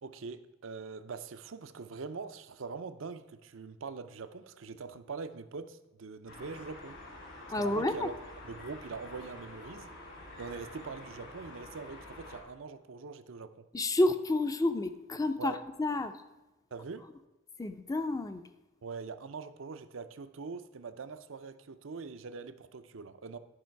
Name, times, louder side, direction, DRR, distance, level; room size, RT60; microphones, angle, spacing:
voice 1, 0.0-7.0 7.5-8.1 8.4-9.9 10.4-13.7 15.4-15.6 16.7-17.1 18.8-23.4, right 4 dB, 75° right, 12 dB, 0.6 m, -43 dB
sound 1, 6.3-12.4, left 2 dB, 70° left, 3.6 m, -48 dB
voice 2, 7.5-8.1 13.7-16.1 17.6-18.4, left 2 dB, 20° left, 9 dB, 0.5 m, -30 dB
11.0 x 5.5 x 4.6 m, 1.0 s
head